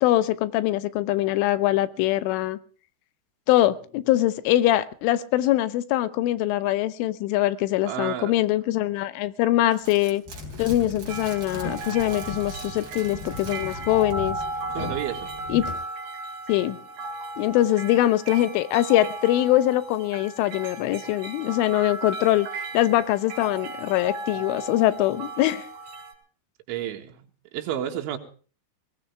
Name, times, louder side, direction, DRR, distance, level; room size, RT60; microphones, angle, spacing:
voice 1, 0.0-2.6 3.5-10.2 10.6-14.4 15.5-15.7 16.5-16.8 17.4-22.5 22.7-25.7, left 14 dB, 90° left, 3.6 m, -23 dB
voice 2, 7.8-8.3 14.8-15.3 26.7-27.2 27.5-28.2, right 11 dB, 80° right, 4.0 m, -31 dB
sound 1, 9.7-14.3 14.6-14.7, right 4 dB, 40° right, 5.0 m, -44 dB
sound 2, 10.3-15.7, left 2 dB, 55° left, 5.8 m, -38 dB
sound 3, 11.1-26.1, right 2 dB, 60° right, 5.7 m, -36 dB
21.5 x 18.0 x 3.4 m
omnidirectional pair, 5.5 m